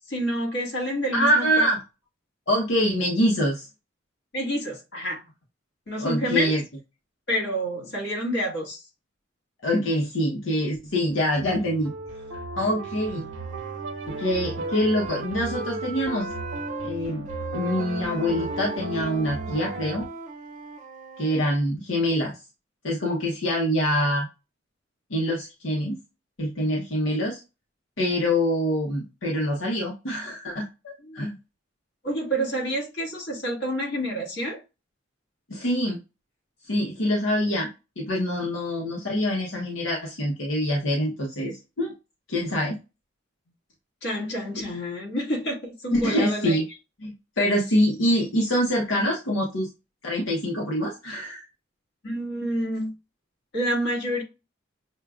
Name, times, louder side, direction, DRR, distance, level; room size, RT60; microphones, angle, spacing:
voice 1, 0.0-1.7 4.3-5.2 5.9-6.6 7.3-8.8 31.0-31.2 32.0-34.6 44.0-46.6 52.0-52.9 53.5-54.2, equal, 60° left, 1.6 m, -28 dB
voice 2, 1.1-1.8 2.5-3.7 6.0-6.6 9.6-11.9 12.6-13.2 14.1-16.3 16.8-17.3 17.5-20.0 21.2-22.3 22.8-24.3 25.1-26.0 26.4-27.4 28.0-31.4 35.5-36.0 36.6-37.7 38.0-41.9 42.3-42.8 45.9-46.6 47.0-49.7 50.0-51.4, equal, 80° left, 0.9 m, -25 dB
sound 1, 11.0-20.1, right 2 dB, 85° right, 0.9 m, -36 dB
Wind instrument woodwind instrument, 13.3-16.9 17.3-21.5, right 3 dB, 40° right, 0.5 m, -38 dB
6.3 x 2.2 x 2.4 m
head